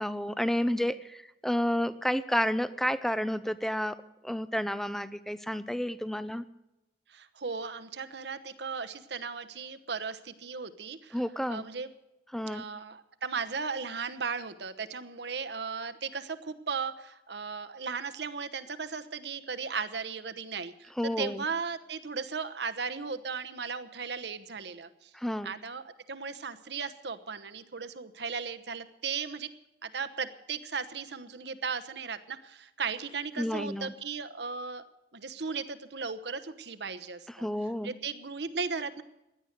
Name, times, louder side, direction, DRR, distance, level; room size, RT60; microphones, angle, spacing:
voice 1, 0.0-4.0 4.2-6.4 11.1-11.7 12.3-12.6 21.0-21.4 25.1-25.5 33.4-33.9 37.4-37.9, equal, ahead, 14 dB, 0.6 m, -30 dB
voice 2, 7.1-11.2 11.5-11.9 12.4-25.1 25.4-29.5 29.8-34.8 35.1-37.5 37.8-39.0, right 5 dB, 70° right, 10 dB, 1.1 m, -36 dB
16.5 x 11.0 x 6.7 m, 0.92 s
head